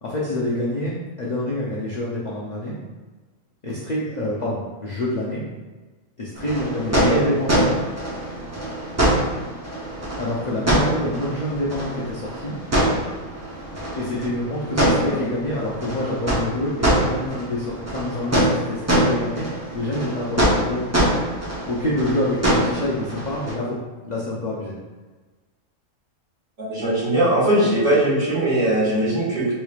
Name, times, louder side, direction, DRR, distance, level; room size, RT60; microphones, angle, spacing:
voice 1, 0.0-2.8 3.6-5.4 6.2-7.8 10.2-12.5 14.0-20.9 21.7-23.8 24.0-24.7, left 1 dB, 60° left, -6 dB, 0.4 m, -27 dB
sound 1, 6.4-23.5, right 1 dB, 20° right, 0.4 m, -24 dB
voice 2, 6.9-7.2 14.8-15.2 26.6-29.5, right 1 dB, 60° right, -11 dB, 2.0 m, -20 dB
4.0 x 3.2 x 2.3 m, 1.3 s
omnidirectional pair, 1.5 m